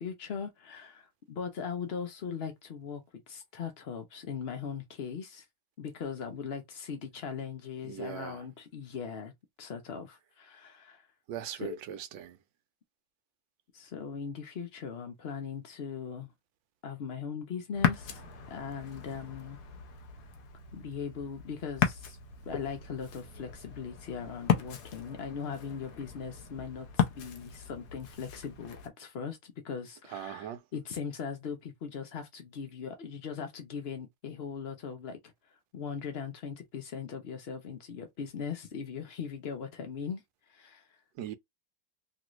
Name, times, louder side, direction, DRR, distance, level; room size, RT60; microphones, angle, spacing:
voice 1, 0.0-5.5 5.8-9.3 9.6-11.1 11.4-11.8 13.7-16.3 16.8-18.2 18.5-19.6 20.7-22.2 22.4-35.2 35.7-40.2 40.5-41.0, left 6 dB, 80° left, 0.5 m, -39 dB
voice 2, 7.8-8.5 11.3-12.4 30.1-30.6 41.2-41.4, right 10 dB, 85° right, 1.3 m, -40 dB
Ocean, 17.7-28.9, left 9 dB, 65° left, 1.0 m, -35 dB
3.0 x 2.5 x 3.0 m
omnidirectional pair, 2.0 m